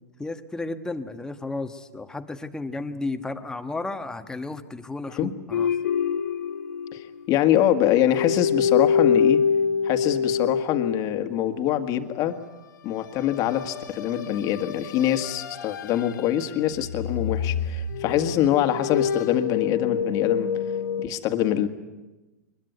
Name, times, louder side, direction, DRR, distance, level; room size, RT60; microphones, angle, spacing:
voice 1, 0.2-5.7, left 2 dB, 5° left, 9 dB, 1.3 m, -33 dB
sound 1, 5.5-7.4 7.7-11.6 13.2-16.4 16.7-21.0, left 7 dB, 80° left, 2.0 m, -26 dB
voice 2, 6.9-9.4 9.8-12.4 12.8-20.5 21.0-21.7, left 11 dB, 40° left, 8 dB, 1.8 m, -24 dB
22.5 x 21.5 x 9.5 m, 1.1 s
hypercardioid pair, 130°, 10 cm